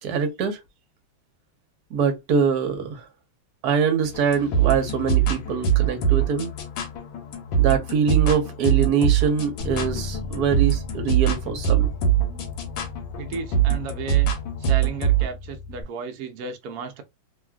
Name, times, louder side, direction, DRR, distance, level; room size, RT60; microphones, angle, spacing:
voice 1, 0.0-0.6 1.9-3.0 3.6-6.5 7.6-11.9 12.2-12.5, right 6 dB, 65° right, 1.0 m, -24 dB
sound 1, 4.0-15.3, right 8 dB, 75° left, 1.5 m, -23 dB
Bass guitar, 9.6-15.8, left 4 dB, 55° left, 1.0 m, -36 dB
voice 2, 13.2-14.3 14.6-17.0, right 5 dB, 85° right, 0.8 m, -34 dB
3.3 x 2.3 x 2.3 m
omnidirectional pair, 2.2 m